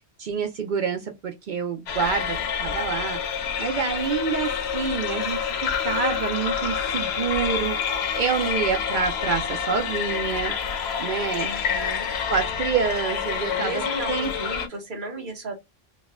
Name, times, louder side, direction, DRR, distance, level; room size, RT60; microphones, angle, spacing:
voice 1, 0.0-3.3 3.6-10.5 11.0-11.5 12.3-13.8 14.1-14.6, right 6 dB, 65° right, 0.5 m, -27 dB
sound 1, 1.9-14.7, left 7 dB, 65° left, 0.8 m, -28 dB
voice 2, 11.4-12.1 13.5-15.5, right 2 dB, 45° right, 1.2 m, -34 dB
4.0 x 2.2 x 2.3 m
omnidirectional pair, 1.3 m